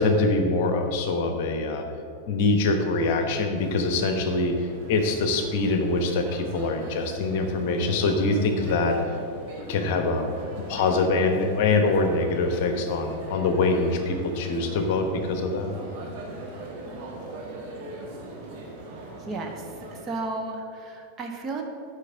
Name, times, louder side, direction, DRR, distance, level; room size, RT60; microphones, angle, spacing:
voice 1, 0.0-1.8 2.3-4.5 4.9-9.0 9.7-10.3 10.7-15.7, left 3 dB, 50° left, 5 dB, 1.0 m, -24 dB
sound 1, 3.5-20.0, right 2 dB, 45° right, 1.7 m, -40 dB
voice 2, 19.1-21.6, right 3 dB, 25° right, 2 dB, 1.2 m, -34 dB
8.3 x 5.1 x 7.0 m, 2.5 s
figure-of-eight pair, 90°, 0 cm